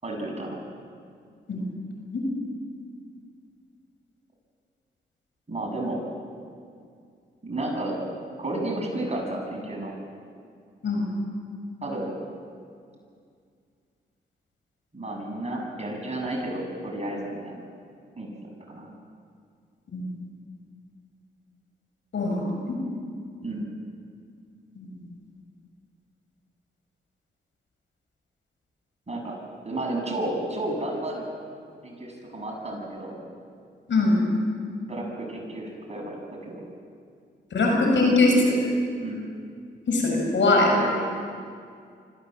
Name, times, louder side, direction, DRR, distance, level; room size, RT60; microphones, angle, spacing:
voice 1, 0.0-0.6 5.5-6.0 7.4-8.0 8.4-9.9 11.8-12.1 14.9-17.6 18.2-18.3 18.7-18.9 23.4-23.7 29.1-29.4 29.6-31.3 31.8-33.2 34.9-36.6 39.0-39.2 40.7-41.1, right 1 dB, 35° right, -1 dB, 7.8 m, -32 dB
voice 2, 22.1-22.8 24.7-24.9 33.9-34.2 37.5-38.6 39.9-40.7, left 2 dB, 70° left, 0 dB, 6.4 m, -22 dB
25.5 x 15.5 x 7.8 m, 2.2 s
supercardioid pair, 45°, 20 cm